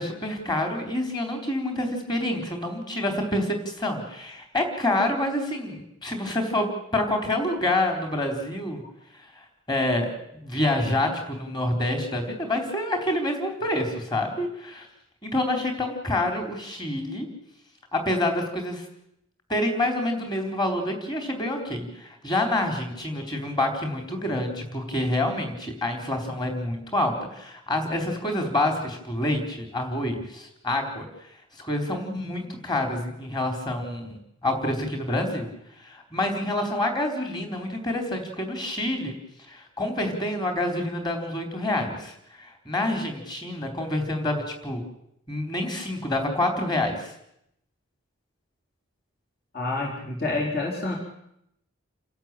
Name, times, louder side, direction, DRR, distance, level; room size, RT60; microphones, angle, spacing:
voice 1, 0.0-8.8 9.3-14.9 15.2-17.3 17.9-18.8 19.5-31.0 31.6-34.2 34.4-35.5 35.8-39.2 39.5-44.8 45.3-47.1, left 1 dB, 20° left, 3 dB, 3.9 m, -27 dB
voice 2, 49.5-50.9, left 2 dB, 45° left, -1 dB, 4.4 m, -28 dB
29.0 x 13.0 x 9.1 m, 0.77 s
head